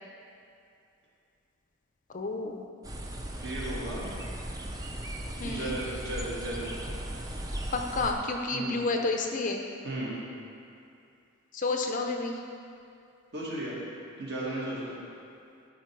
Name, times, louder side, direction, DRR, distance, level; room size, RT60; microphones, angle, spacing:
voice 1, 2.1-2.7 5.4-5.7 7.7-9.6 11.5-12.4, left 3 dB, 35° left, 3 dB, 0.5 m, -30 dB
sound 1, 2.8-8.1, right 1 dB, 15° right, 0.5 m, -37 dB
voice 2, 3.4-4.1 5.4-6.7 8.5-8.8 9.8-10.1 13.3-13.8 14.2-15.0, right 1 dB, 50° right, -6 dB, 2.0 m, -35 dB
12.0 x 4.4 x 4.6 m, 2.5 s
head